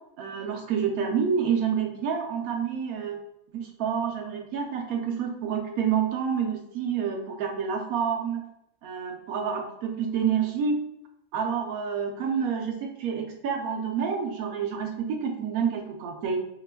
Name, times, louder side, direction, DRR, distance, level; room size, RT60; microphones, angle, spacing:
voice 1, 0.2-3.2 3.5-8.5 8.8-10.8 11.3-16.4, right 7 dB, 80° right, 2 dB, 1.1 m, -28 dB
4.0 x 2.9 x 2.2 m, 0.82 s
omnidirectional pair, 1.5 m